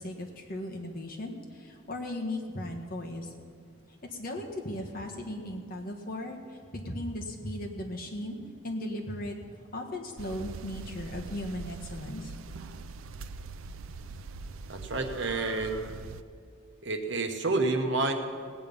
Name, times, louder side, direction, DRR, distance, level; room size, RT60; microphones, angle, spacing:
voice 1, 0.0-3.3 4.1-9.4 9.7-12.3, left 1 dB, 40° left, 1 dB, 1.5 m, -37 dB
sound 1, 10.2-16.2, right 4 dB, 70° right, 0.4 m, -42 dB
voice 2, 14.7-15.8 16.8-18.1, right 3 dB, 55° right, 5 dB, 1.1 m, -29 dB
19.0 x 8.7 x 5.4 m, 2.2 s
head